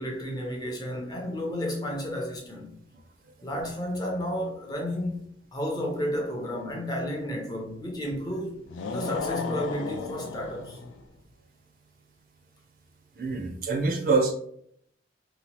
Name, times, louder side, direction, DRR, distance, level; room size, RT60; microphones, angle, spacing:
voice 1, 0.0-2.7 3.4-5.2 5.5-8.6 8.9-10.8, equal, 20° left, 0.5 m, -32 dB
sound 1, 8.7-11.0, left 4 dB, 90° left, 0.3 m, -34 dB
voice 2, 13.2-14.3, right 3 dB, 50° right, 0.4 m, -25 dB
2.8 x 2.0 x 2.9 m
head